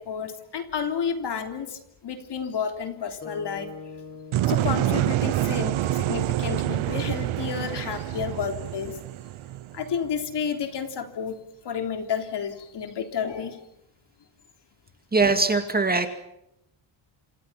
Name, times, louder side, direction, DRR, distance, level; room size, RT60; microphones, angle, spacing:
voice 1, 0.0-3.7 4.5-9.0 9.7-11.4 11.6-13.7, left 7 dB, 55° left, 5 dB, 3.6 m, -31 dB
sound 1, 3.2-7.5, left 4 dB, 25° left, 5.3 m, -44 dB
sound 2, 4.3-10.2, right 14 dB, 75° right, 0.9 m, -27 dB
voice 2, 15.1-16.2, right 3 dB, 20° right, 7 dB, 2.2 m, -22 dB
27.5 x 27.5 x 5.9 m, 0.80 s
cardioid pair, 145°, 49 cm